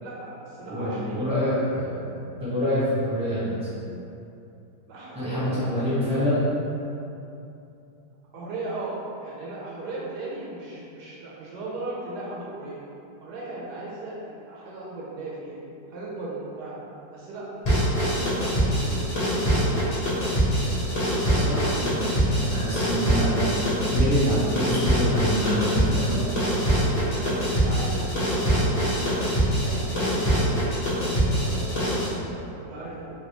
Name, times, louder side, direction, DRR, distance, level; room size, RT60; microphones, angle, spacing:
voice 1, 0.0-1.3 4.9-5.9 8.3-12.8 13.2-15.6 15.9-16.8 17.1-17.6 17.9-20.3 25.9-26.2 27.0-30.6 31.2-33.1, right 2 dB, 80° right, -6 dB, 1.2 m, -37 dB
voice 2, 0.7-1.9 2.4-3.6 5.1-6.4 21.3-26.1, equal, 5° right, -12 dB, 0.9 m, -26 dB
sound 1, 17.6-32.1, equal, 70° left, 0.3 m, -24 dB
3.2 x 2.6 x 2.9 m, 2.8 s
omnidirectional pair, 1.8 m